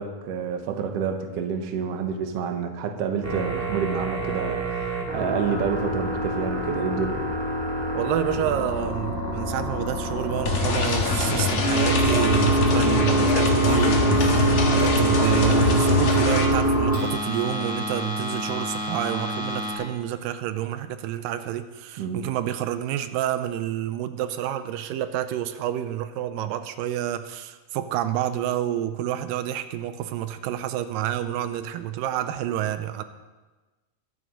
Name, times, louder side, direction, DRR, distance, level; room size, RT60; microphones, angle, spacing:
voice 1, 0.0-4.8 5.1-7.2 22.0-22.2, right 6 dB, 60° right, 5 dB, 1.9 m, -28 dB
sound 1, 3.2-19.7, right 1 dB, 5° right, 3.5 m, -25 dB
voice 2, 7.9-33.0, right 12 dB, 85° right, 11 dB, 2.3 m, -29 dB
sound 2, 10.5-16.5, left 4 dB, 55° left, 2.4 m, -24 dB
22.0 x 9.4 x 3.9 m, 1.2 s
omnidirectional pair, 3.9 m